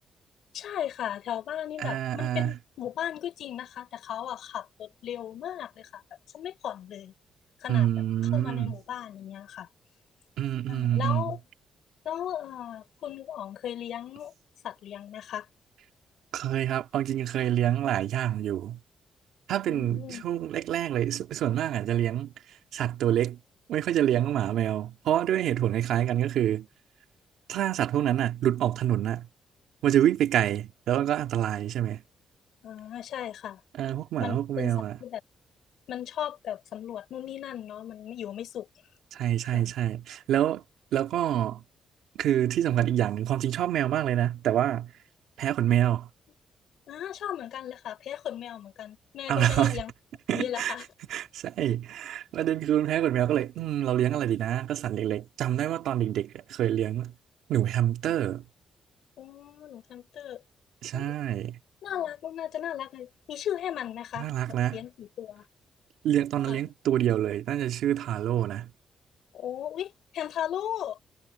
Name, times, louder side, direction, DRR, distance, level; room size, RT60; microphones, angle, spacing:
voice 1, 0.5-6.0 6.3-7.1 7.6-7.9 8.3-9.7 10.7-11.4 12.1-14.3 14.6-15.5 19.7-20.3 32.6-33.6 34.2-34.7 35.0-35.2 35.9-38.7 39.5-39.7 46.9-49.9 50.3-50.9 58.0-58.1 59.2-60.4 60.9-61.1 61.8-64.3 64.7-65.4 66.5-66.6 69.3-71.0, left 10 dB, 75° left, 5.2 m, -36 dB
voice 2, 1.8-2.5 7.7-8.7 10.4-11.3 16.3-18.8 19.5-22.3 22.7-23.4 23.7-26.7 27.5-29.3 29.8-32.0 33.8-35.0 39.1-40.6 40.9-41.6 42.2-44.9 45.4-46.1 49.3-49.8 50.3-50.7 51.1-57.1 57.5-58.4 60.8-61.6 64.2-64.8 66.0-68.7, right 11 dB, 90° right, 2.2 m, -27 dB
cardioid pair, 115°, 0 cm